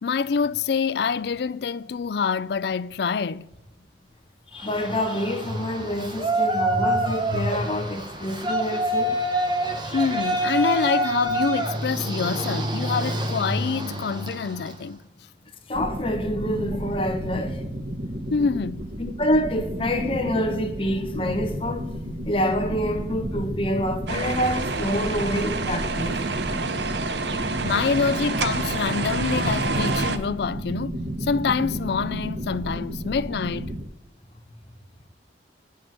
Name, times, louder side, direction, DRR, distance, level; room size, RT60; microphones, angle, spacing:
voice 1, 0.0-3.5 9.9-15.0 18.3-18.9 27.6-33.7, left 5 dB, 65° left, 0.4 m, -26 dB
voice 2, 4.5-9.2 9.9-10.0 15.7-17.6 19.0-21.9 22.2-26.2, equal, 30° left, 1.2 m, -27 dB
Yell, 4.6-14.8, right 1 dB, 25° right, 1.3 m, -27 dB
sound 1, 15.7-33.8, equal, 40° right, 1.2 m, -32 dB
sound 2, 24.1-30.2, right 3 dB, 70° right, 0.8 m, -28 dB
9.3 x 6.5 x 7.6 m
head